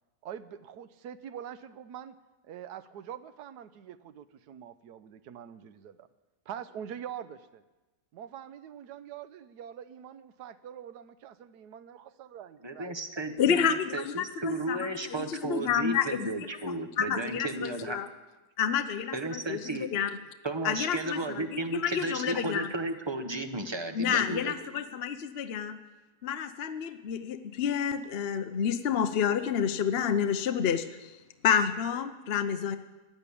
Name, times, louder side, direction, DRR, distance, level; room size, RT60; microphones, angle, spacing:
voice 1, 0.2-2.2 2.4-6.1 6.5-7.6 8.1-13.0, right 9 dB, 70° right, 12 dB, 1.3 m, -44 dB
voice 2, 12.6-18.0 19.1-19.9 20.4-24.5, right 2 dB, 20° right, 7 dB, 0.8 m, -34 dB
voice 3, 13.4-16.4 17.0-18.1 18.6-20.1 20.6-22.7 23.9-25.8 26.2-31.2 31.4-32.8, left 8 dB, 50° left, 9 dB, 0.7 m, -29 dB
16.0 x 10.5 x 8.4 m, 1.1 s
omnidirectional pair, 1.8 m